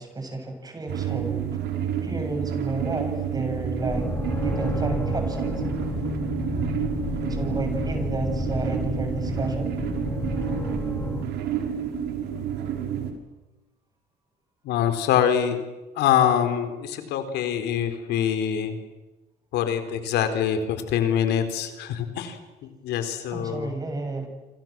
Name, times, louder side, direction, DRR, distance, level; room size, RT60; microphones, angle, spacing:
voice 1, 0.0-1.6 2.0-4.1 4.4-5.6 7.3-9.8 23.3-24.3, right 2 dB, 20° right, 6 dB, 7.3 m, -31 dB
sound 1, 0.9-13.1, right 8 dB, 80° right, 5.3 m, -29 dB
sound 2, 3.8-11.2, left 3 dB, 15° left, 3.8 m, -31 dB
voice 2, 14.6-15.6 16.0-18.8 19.5-22.4 22.8-23.7, left 9 dB, 85° left, 8 dB, 4.2 m, -24 dB
28.0 x 27.5 x 7.7 m, 1.1 s
cardioid pair, 110°, 17 cm